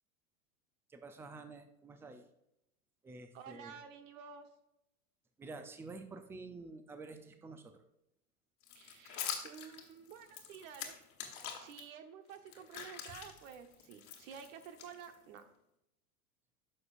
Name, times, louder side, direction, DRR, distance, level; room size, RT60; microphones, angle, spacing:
voice 1, 0.9-2.2 3.0-3.7 5.4-7.8, right 3 dB, 5° right, 8 dB, 0.4 m, -49 dB
voice 2, 3.3-4.5 8.7-11.0 11.4-15.4, right 7 dB, 60° right, 8 dB, 1.1 m, -51 dB
sound 1, 8.6-11.8 12.3-15.4, left 8 dB, 40° left, 1.4 m, -45 dB
9.5 x 6.4 x 2.5 m, 0.84 s
hypercardioid pair, 105°, 44 cm